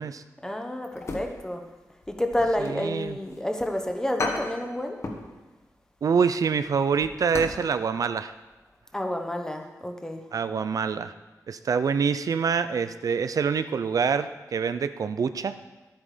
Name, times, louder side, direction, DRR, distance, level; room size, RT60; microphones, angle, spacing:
voice 1, 0.4-1.6 2.1-5.0 8.9-10.2, left 1 dB, 10° left, 4 dB, 1.0 m, -29 dB
sound 1, 0.9-1.7 2.0-3.4 3.8-3.9 4.2-5.3 5.6-5.8 6.2-7.7 7.9-8.0 8.5-8.8 9.0-9.1, left 3 dB, 45° left, 1.3 m, -35 dB
voice 2, 2.6-3.2 6.0-8.3 10.3-11.1 11.5-15.6, right 6 dB, 65° right, 11 dB, 0.4 m, -26 dB
12.0 x 9.0 x 4.9 m, 1.1 s
wide cardioid pair, 175°, 6 cm